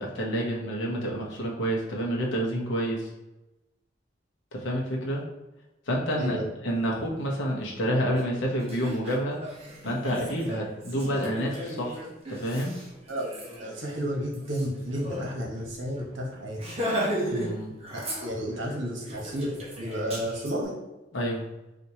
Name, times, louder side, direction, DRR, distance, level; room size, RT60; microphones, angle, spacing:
voice 1, 0.0-3.1 4.5-5.2 5.9-9.4 9.8-12.7 17.3-17.7 21.1-21.4, equal, 75° left, -2 dB, 0.8 m, -29 dB
Laughter, 8.1-8.2 8.6-15.2 15.6-15.7 16.0-16.2 16.6-17.5 17.8-18.6 19.1-20.5, equal, 35° right, 1.0 m, -35 dB
voice 2, 13.6-16.6 17.9-20.8, equal, 75° right, -1 dB, 1.0 m, -32 dB
4.3 x 2.5 x 2.8 m, 0.99 s
head